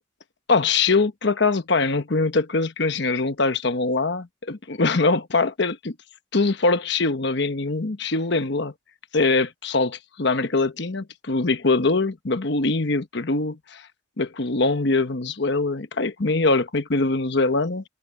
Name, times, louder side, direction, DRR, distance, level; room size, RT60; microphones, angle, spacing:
voice 1, 0.5-5.9 6.3-8.7 9.1-13.9 14.2-17.8, left 3 dB, 60° left, 1.1 m, -23 dB
head